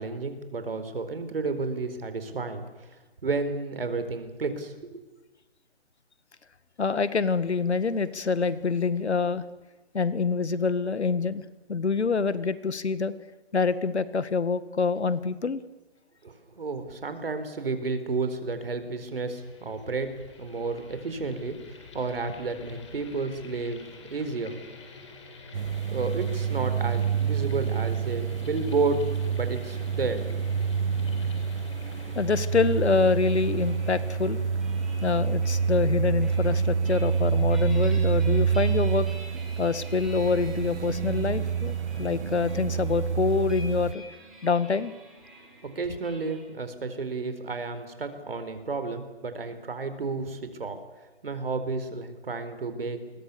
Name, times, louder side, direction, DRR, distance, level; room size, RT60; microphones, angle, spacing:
voice 1, 0.0-3.0 3.2-5.0 16.2-20.1 20.4-23.8 24.1-24.6 25.9-30.2 45.6-50.8 51.2-53.0, right 3 dB, 60° right, 9 dB, 4.2 m, -31 dB
voice 2, 6.8-9.4 9.9-11.4 11.7-13.1 13.5-15.6 32.2-34.4 35.0-39.1 39.6-44.0 44.4-44.9, left 4 dB, 80° left, 15 dB, 1.9 m, -26 dB
sound 1, 18.9-35.6, left 3 dB, 25° left, 4.1 m, -48 dB
sound 2, 25.5-43.9, right 6 dB, 90° right, 1.0 m, -27 dB
sound 3, 33.2-46.4, right 2 dB, ahead, 1.3 m, -49 dB
29.5 x 22.0 x 7.0 m, 1.1 s
hypercardioid pair, 175°, 33 cm